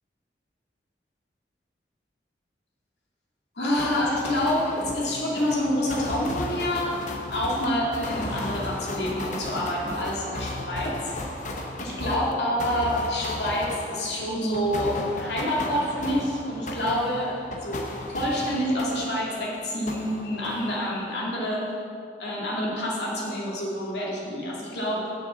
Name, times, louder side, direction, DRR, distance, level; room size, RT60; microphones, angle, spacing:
voice 1, 3.6-7.0 7.3-11.0 11.8-17.3 17.6-17.8 18.1-21.7 22.2-25.1, left 1 dB, 75° left, -4 dB, 2.2 m, -27 dB
sound 1, 3.8-19.5 19.9-21.2, left 1 dB, 45° left, 0.9 m, -35 dB
6.9 x 6.6 x 7.3 m, 2.4 s
head